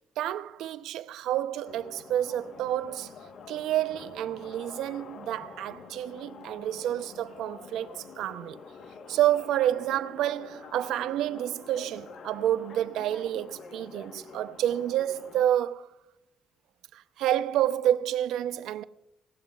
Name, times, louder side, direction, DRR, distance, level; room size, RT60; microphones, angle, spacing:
voice 1, 0.2-3.1 3.5-8.6 9.1-15.9 16.9-18.8, right 12 dB, 85° right, 0.6 m, -29 dB
sound 1, 1.7-15.5, left 5 dB, 65° left, 1.2 m, -47 dB
19.0 x 17.0 x 2.4 m
cardioid pair, 90°, 0 cm